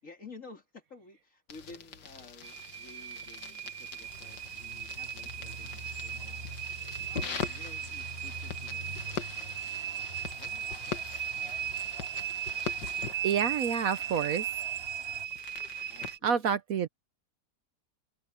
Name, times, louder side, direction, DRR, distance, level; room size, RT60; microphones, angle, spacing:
voice 1, 0.0-6.8 7.1-10.1 10.4-12.6 15.9-16.6, left 3 dB, 50° left, 4.3 m, -53 dB
sound 1, 1.5-16.2, left 6 dB, 85° left, 2.1 m, -43 dB
sound 2, 2.4-16.2, right 10 dB, 80° right, 0.6 m, -37 dB
sound 3, 4.0-15.3, right 1 dB, 35° right, 6.4 m, -47 dB
voice 2, 13.2-14.5 16.0-16.9, right 7 dB, 65° right, 1.1 m, -29 dB
open air
omnidirectional pair, 1.8 m